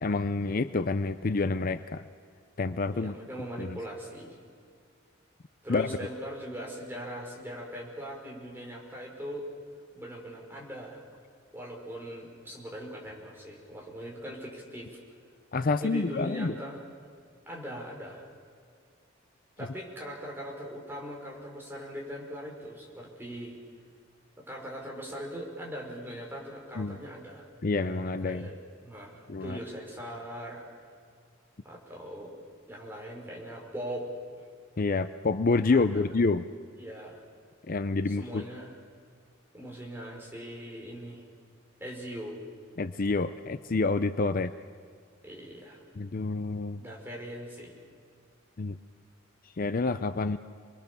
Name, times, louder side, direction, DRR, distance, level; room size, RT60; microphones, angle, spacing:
voice 1, 0.0-2.0 2.6-3.1 3.6-3.8 5.7-5.9 15.5-16.5 26.8-27.0 27.6-28.5 29.3-29.6 34.8-36.4 37.7-38.4 42.8-44.5 46.0-46.8 48.6-48.8 49.6-50.4, left 3 dB, 45° left, 11 dB, 0.6 m, -28 dB
voice 2, 2.9-4.4 5.6-9.4 9.9-11.0 11.5-15.0 15.7-16.8 17.5-18.3 19.6-23.6 24.4-27.4 28.2-30.7 31.6-32.4 32.7-34.1 35.7-36.0 36.7-37.2 38.1-38.7 39.5-41.2 41.8-42.4 45.2-45.8 46.8-47.7, equal, 10° right, -1 dB, 5.3 m, -40 dB
29.0 x 22.0 x 7.0 m, 2.1 s
head